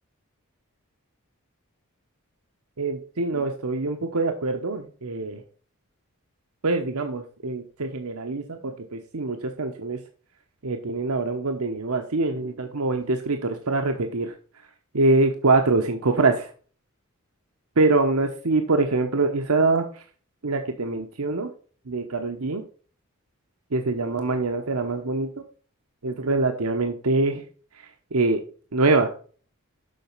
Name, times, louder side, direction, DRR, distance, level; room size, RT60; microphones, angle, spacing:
voice 1, 2.8-5.4 6.6-10.0 10.6-14.3 14.9-16.5 17.8-19.8 20.4-21.5 21.9-22.6 23.7-25.3 26.0-27.4 28.1-28.4 28.7-29.1, right 3 dB, 90° right, 5 dB, 1.0 m, -24 dB
7.6 x 5.9 x 5.5 m, 0.41 s
head